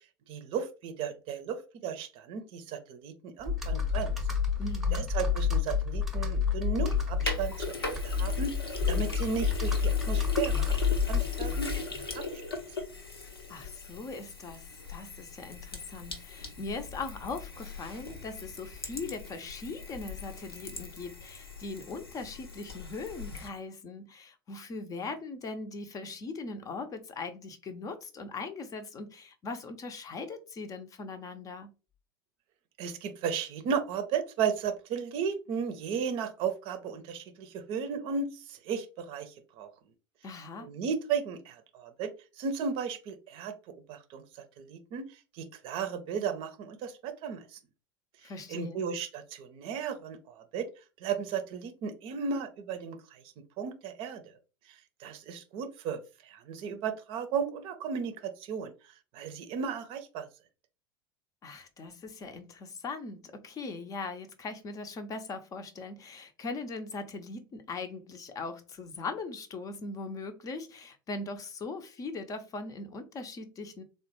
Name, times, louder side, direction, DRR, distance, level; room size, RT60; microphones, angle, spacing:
voice 1, 0.3-4.1 4.9-10.8 11.1-11.7 12.1-12.4 32.8-39.7 40.6-42.1 42.4-43.5 43.9-47.6 48.5-50.7 51.0-53.2 53.6-54.2 54.7-58.7 59.1-60.3, right 6 dB, 45° right, 0.6 m, -35 dB
Computer keyboard, 3.4-12.0, left 6 dB, ahead, 0.8 m, -29 dB
voice 2, 4.6-5.1 13.5-31.7 40.2-40.7 48.2-48.8 61.4-73.8, left 3 dB, 30° left, 0.6 m, -40 dB
Sink (filling or washing), 6.9-23.5, left 3 dB, 85° left, 0.7 m, -40 dB
3.6 x 2.2 x 2.9 m
figure-of-eight pair, 80°, 12 cm